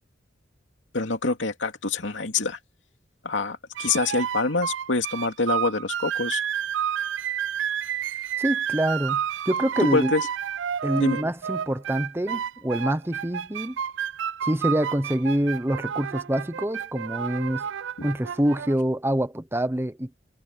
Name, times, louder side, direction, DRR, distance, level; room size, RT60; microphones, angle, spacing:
voice 1, 0.9-2.6 3.2-6.4 9.8-10.3 11.0-11.2 18.0-18.1, left 3 dB, 85° left, 2.6 m, -26 dB
sound 1, 3.8-18.7, right 9 dB, 80° right, 0.4 m, -30 dB
voice 2, 8.4-10.1 10.8-13.8 14.4-17.7 18.0-20.1, right 1 dB, 15° right, 1.0 m, -26 dB
head